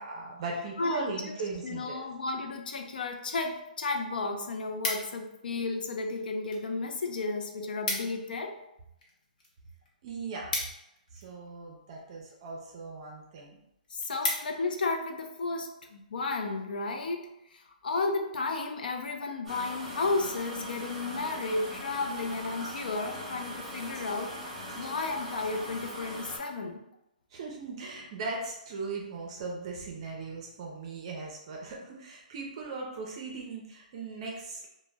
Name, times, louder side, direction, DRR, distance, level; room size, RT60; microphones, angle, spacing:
voice 1, 0.0-2.0 10.0-10.5 11.1-13.6 27.3-34.7, right 3 dB, 40° right, -1 dB, 0.5 m, -38 dB
voice 2, 0.8-1.3 1.6-8.6 13.9-26.8, left 3 dB, 75° left, 4 dB, 0.4 m, -33 dB
sound 1, 4.3-5.4 6.1-6.7 7.0-7.1 7.3-7.4 7.6-8.3 8.6-11.5 12.2-12.5 13.0-13.1 13.5-13.6 13.8-14.8 15.3-15.5, left 2 dB, 60° left, 0.8 m, -35 dB
sound 2, 19.4-26.4, equal, 5° left, 0.6 m, -41 dB
2.1 x 2.0 x 3.3 m, 0.85 s
hypercardioid pair, 160°, 5 cm